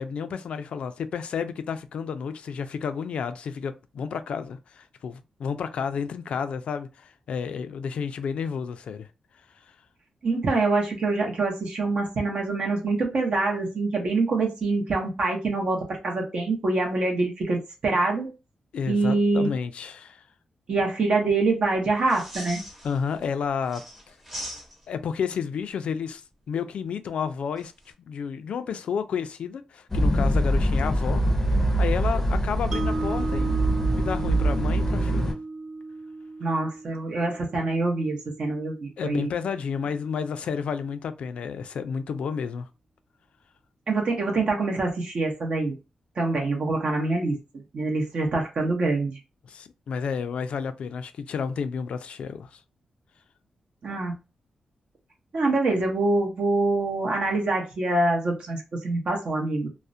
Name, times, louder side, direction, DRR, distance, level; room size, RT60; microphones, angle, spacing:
voice 1, 0.0-9.1 18.7-20.2 22.8-23.8 24.9-26.2 26.5-27.7 28.1-31.2 31.8-33.5 33.9-35.4 39.0-42.7 49.5-52.6, left 6 dB, 80° left, 0.3 m, -31 dB
voice 2, 10.2-18.3 18.9-19.5 20.7-22.6 36.4-39.3 43.9-45.8 46.2-47.4 47.7-49.2 53.8-54.2 55.3-59.7, right 3 dB, 60° right, 0.7 m, -25 dB
sound 1, 22.0-23.3 23.6-25.1 27.6-27.9, equal, 15° right, 0.8 m, -40 dB
sound 2, 29.9-35.3, right 1 dB, 20° left, 0.5 m, -24 dB
Mallet percussion, 32.7-38.9, right 3 dB, 35° right, 0.3 m, -35 dB
2.3 x 2.0 x 2.5 m
wide cardioid pair, 105°, 2 cm